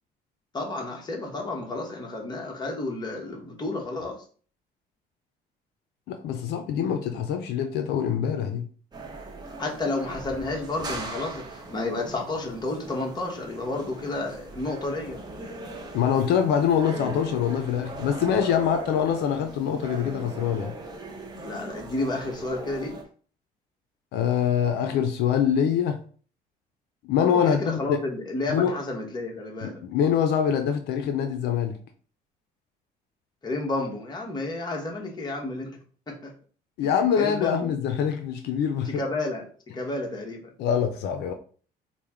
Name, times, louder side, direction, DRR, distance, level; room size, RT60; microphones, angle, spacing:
voice 1, 0.5-4.2 9.6-15.2 21.4-23.0 27.3-29.8 33.4-35.8 36.1-36.3 36.8-36.9 37.2-37.7 38.8-40.5, left 2 dB, 25° left, 1.1 m, -31 dB
voice 2, 6.1-8.7 15.9-20.7 24.1-26.0 27.0-28.0 28.5-28.7 29.6-31.8 36.8-39.0 40.6-41.3, left 8 dB, 75° left, 0.5 m, -24 dB
sound 1, 8.9-23.0, right 2 dB, 25° right, 0.9 m, -39 dB
4.3 x 2.1 x 3.5 m
cardioid pair, 110°, 17 cm